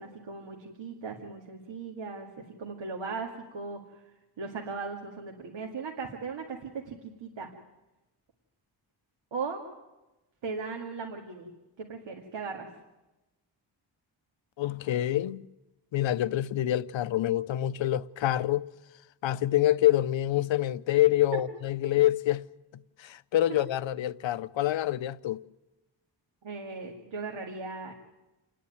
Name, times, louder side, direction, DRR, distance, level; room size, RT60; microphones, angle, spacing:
voice 1, 0.0-3.8 4.4-7.5 9.3-9.6 10.4-11.5 11.8-12.7 26.4-27.9, right 4 dB, 80° right, 2.2 m, -38 dB
voice 2, 14.6-15.5 15.9-18.7 19.2-22.4 22.7-25.4, left 13 dB, 80° left, 0.7 m, -26 dB
29.0 x 10.0 x 9.3 m
wide cardioid pair, 160°, 45 cm